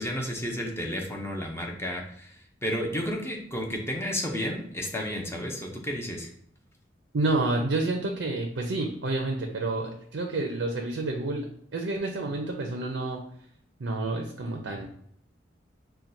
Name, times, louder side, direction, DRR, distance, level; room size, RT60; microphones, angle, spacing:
voice 1, 0.0-2.3 2.6-6.3, equal, 15° left, 1 dB, 0.6 m, -32 dB
voice 2, 7.1-13.2 13.8-14.9, right 2 dB, 90° right, 2 dB, 0.5 m, -29 dB
5.7 x 2.2 x 2.6 m, 0.65 s
head